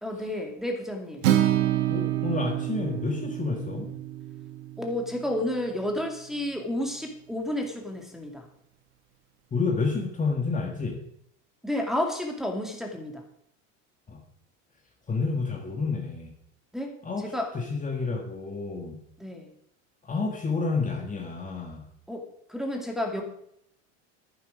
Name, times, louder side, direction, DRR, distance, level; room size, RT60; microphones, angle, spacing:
voice 1, 0.0-1.3 4.8-8.4 11.6-13.2 16.7-16.9 17.3-17.5 19.2-19.5 22.1-23.2, left 1 dB, ahead, 2 dB, 2.3 m, -31 dB
Acoustic guitar, 1.2-5.5, right 12 dB, 85° right, 1.4 m, -27 dB
voice 2, 1.9-3.9 9.5-11.0 14.1-14.2 15.1-16.3 17.0-19.0 20.0-21.9, left 4 dB, 20° left, 1 dB, 1.7 m, -29 dB
11.0 x 9.7 x 5.0 m, 0.70 s
supercardioid pair, 110°, 38 cm